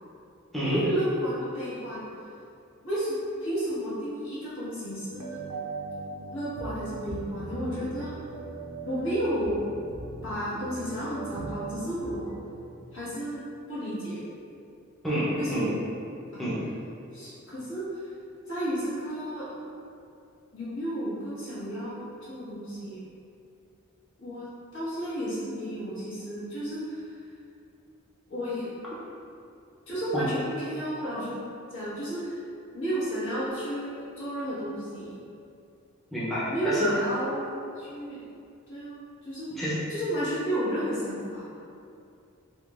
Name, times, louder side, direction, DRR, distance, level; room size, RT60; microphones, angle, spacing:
voice 1, 0.6-2.0 2.8-3.2 3.4-5.4 6.3-8.1 8.8-9.6 10.2-12.3 12.9-13.4 13.7-14.2 15.3-15.8 16.3-16.4 17.1-18.0 18.5-19.5 20.5-23.0 24.2-24.5 24.7-27.1 28.3-28.7 29.9-31.4 31.7-32.4 32.7-35.2 36.5-37.5 37.8-38.2 38.7-39.5 39.9-41.5, equal, 65° left, -10 dB, 1.3 m, -32 dB
sound 1, 5.1-12.7, right 3 dB, 90° right, 0.5 m, -39 dB
voice 2, 15.0-15.7 16.4-16.6 30.1-30.3 36.1-36.9 39.6-39.8, equal, ahead, -10 dB, 0.6 m, -28 dB
3.6 x 3.0 x 2.4 m, 2.5 s
head